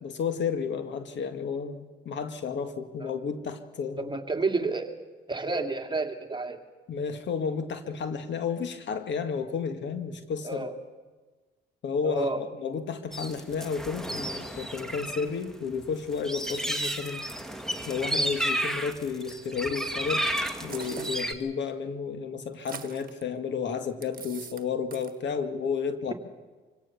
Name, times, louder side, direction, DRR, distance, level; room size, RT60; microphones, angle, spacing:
voice 1, 0.0-4.1 6.9-10.7 11.8-17.2 17.9-20.3 20.6-26.1, left 6 dB, 65° left, 8 dB, 1.9 m, -32 dB
voice 2, 4.0-4.9 5.3-6.6 10.4-10.7 12.0-12.4 15.1-15.3 16.5-16.7, right 3 dB, 25° right, 5 dB, 2.3 m, -30 dB
sound 1, 13.1-15.3 15.5-21.3, right 1 dB, ahead, 1.8 m, -32 dB
sound 2, 20.6-21.3 22.5-23.2 24.0-24.6 24.9-25.2, right 7 dB, 45° right, 1.5 m, -42 dB
25.5 x 17.5 x 7.0 m, 1.3 s
cardioid pair, 75°, 20 cm